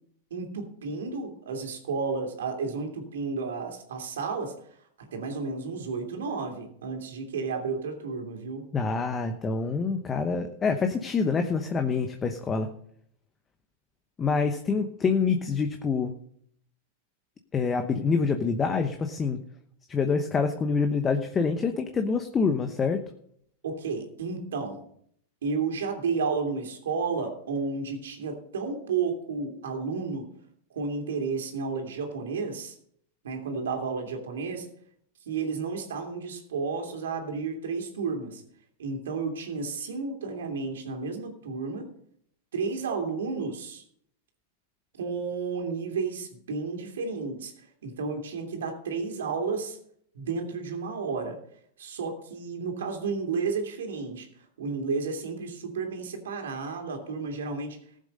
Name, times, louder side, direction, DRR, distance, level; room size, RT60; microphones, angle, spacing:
voice 1, 0.3-4.8 5.1-8.7 23.6-24.8 25.4-30.3 30.7-32.7 33.2-34.7 35.2-38.4 38.8-41.9 42.5-43.8 45.0-49.8 50.1-51.4 51.8-54.3 54.6-57.8, right 4 dB, 85° right, 3 dB, 2.8 m, -32 dB
voice 2, 8.7-12.7 14.2-16.1 17.5-19.4 19.9-23.0, left 5 dB, 20° left, 6 dB, 1.0 m, -26 dB
15.0 x 7.6 x 5.4 m, 0.68 s
hypercardioid pair, 120°, 0 cm